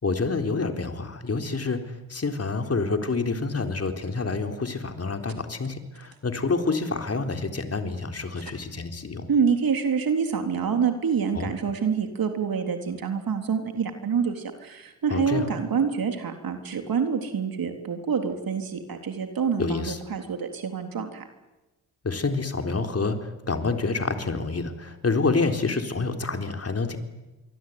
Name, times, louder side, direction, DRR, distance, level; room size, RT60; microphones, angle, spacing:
voice 1, 0.0-9.3 11.3-11.5 15.1-15.5 19.6-20.0 22.0-27.0, left 3 dB, 40° left, 5 dB, 3.9 m, -28 dB
voice 2, 9.3-21.3, right 6 dB, 60° right, 5 dB, 3.7 m, -27 dB
26.0 x 23.5 x 9.6 m, 1.1 s
cardioid pair, 60°, 39 cm